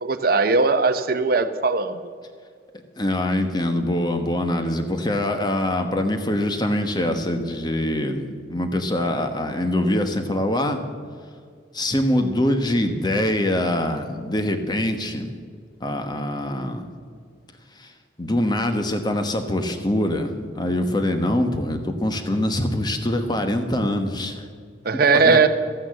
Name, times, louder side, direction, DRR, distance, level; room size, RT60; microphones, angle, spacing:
voice 1, 0.0-2.0 24.8-25.5, right 4 dB, 50° right, 9 dB, 0.7 m, -19 dB
voice 2, 3.0-10.8 11.7-15.4 15.8-16.9 17.8-17.9 18.2-24.4 25.1-25.5, left 1 dB, 20° left, 6 dB, 1.1 m, -24 dB
13.5 x 9.0 x 7.6 m, 2.1 s
head